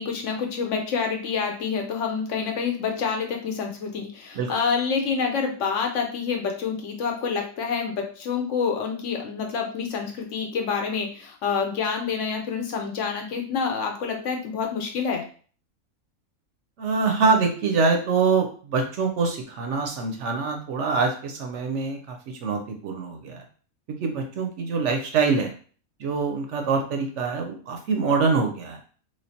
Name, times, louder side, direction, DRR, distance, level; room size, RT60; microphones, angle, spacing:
voice 1, 0.0-15.2, left 5 dB, 65° left, 3 dB, 0.9 m, -27 dB
voice 2, 16.8-23.4 23.9-25.5 26.0-28.8, right 4 dB, 65° right, 3 dB, 0.8 m, -24 dB
3.1 x 3.1 x 2.7 m, 0.42 s
omnidirectional pair, 1.5 m